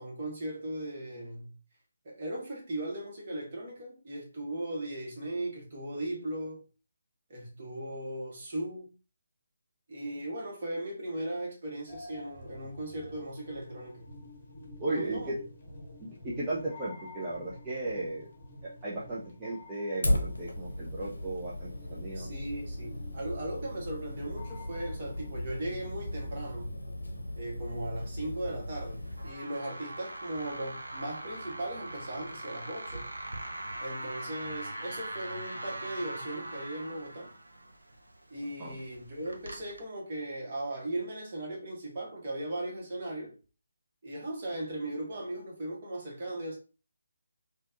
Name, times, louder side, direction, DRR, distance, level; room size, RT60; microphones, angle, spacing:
voice 1, 0.0-1.5 2.0-6.6 7.3-8.9 9.9-14.0 14.9-15.3 22.1-26.7 27.4-33.1 33.8-37.3 38.3-43.3 44.0-46.6, right 1 dB, 35° right, 1.2 m, -38 dB
sound 1, 11.9-26.7, left 1 dB, 35° left, 0.9 m, -50 dB
voice 2, 14.8-15.4 16.0-18.3 18.6-22.5 38.6-38.8, right 2 dB, 15° right, 0.6 m, -36 dB
Fire, 20.0-29.3, left 1 dB, 65° left, 0.7 m, -36 dB
sound 2, 28.8-39.8, right 1 dB, 70° right, 0.6 m, -42 dB
3.4 x 2.3 x 2.5 m
figure-of-eight pair, 145°, 0 cm